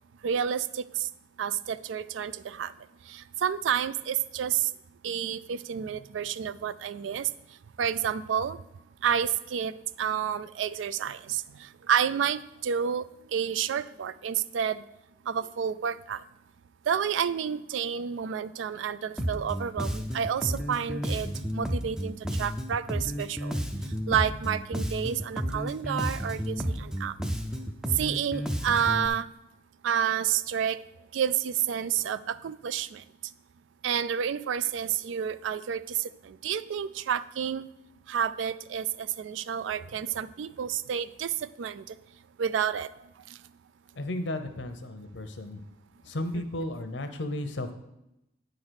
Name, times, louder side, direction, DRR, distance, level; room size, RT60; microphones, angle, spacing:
voice 1, 0.2-1.1 1.4-2.7 3.1-4.7 5.0-7.3 7.8-8.6 9.0-13.0 13.3-14.8 15.3-16.2 16.9-21.3 21.5-23.6 24.1-27.2 28.0-29.3 29.8-30.8 31.1-33.0 33.8-37.7 38.1-42.0 42.4-42.9 46.4-46.5, right 8 dB, 85° right, 16 dB, 0.3 m, -30 dB
Bass guitar, 19.2-29.1, equal, 5° right, 0.4 m, -32 dB
voice 2, 44.0-45.6 46.0-47.7, left 1 dB, 75° left, 8 dB, 0.8 m, -34 dB
9.4 x 3.9 x 6.3 m, 0.87 s
head